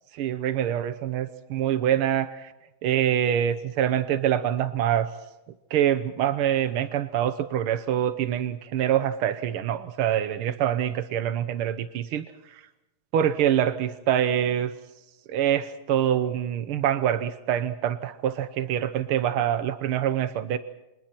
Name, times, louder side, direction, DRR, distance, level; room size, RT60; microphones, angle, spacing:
voice 1, 0.2-2.5 2.8-5.1 5.7-12.6 13.1-14.7 15.3-20.6, right 10 dB, 85° right, 11 dB, 1.9 m, -25 dB
29.5 x 26.5 x 4.5 m, 0.99 s
omnidirectional pair, 2.3 m